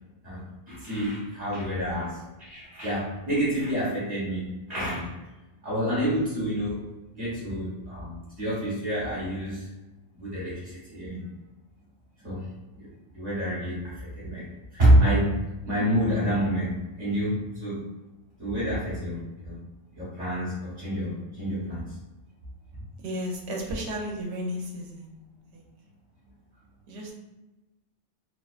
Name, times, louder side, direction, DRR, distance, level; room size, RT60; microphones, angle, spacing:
voice 1, 0.7-2.2 2.4-5.1 5.6-6.8 7.2-9.7 10.1-11.2 12.2-12.5 12.8-12.9 13.1-15.4 15.6-17.8 18.4-19.5 20.0-21.8, equal, 40° right, -10 dB, 0.9 m, -27 dB
voice 2, 1.8-2.2 23.0-25.1 25.5-25.6 26.9-27.1, equal, 70° right, 0 dB, 0.8 m, -34 dB
2.4 x 2.3 x 2.3 m, 1.1 s
omnidirectional pair, 1.2 m